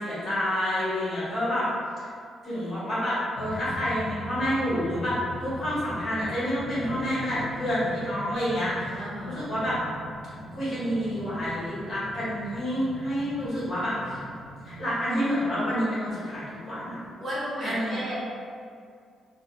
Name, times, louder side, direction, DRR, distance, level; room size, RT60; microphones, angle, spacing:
voice 1, 0.0-1.7 2.4-9.8 10.5-14.2 14.6-17.0 17.6-18.0, equal, 40° left, -10 dB, 1.2 m, -28 dB
sound 1, 3.4-14.9, equal, 80° left, 0.4 m, -40 dB
voice 2, 9.0-9.6 17.2-18.1, equal, 40° right, -9 dB, 0.9 m, -34 dB
3.4 x 2.1 x 2.4 m, 2.2 s
cardioid pair, 135°, 0 cm